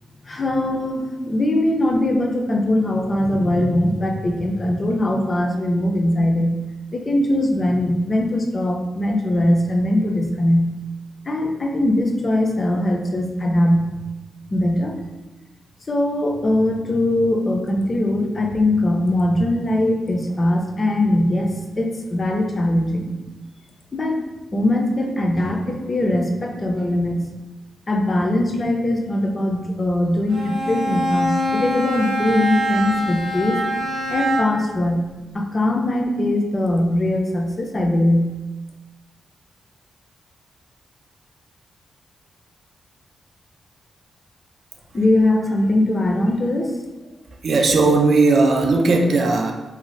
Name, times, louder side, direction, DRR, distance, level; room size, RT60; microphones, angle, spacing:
voice 1, 0.2-6.6 6.9-10.7 11.3-13.8 14.5-14.9 15.9-21.5 21.8-23.1 23.9-24.2 24.5-27.2 27.9-33.6 34.1-35.0 35.3-38.3 44.9-46.8, left 1 dB, 35° left, 2 dB, 0.4 m, -21 dB
Bowed string instrument, 30.3-34.7, equal, 80° right, 0.7 m, -24 dB
voice 2, 47.4-49.5, right 3 dB, 60° right, 3 dB, 0.4 m, -17 dB
2.6 x 2.3 x 3.1 m, 1.1 s
cardioid pair, 105°, 0 cm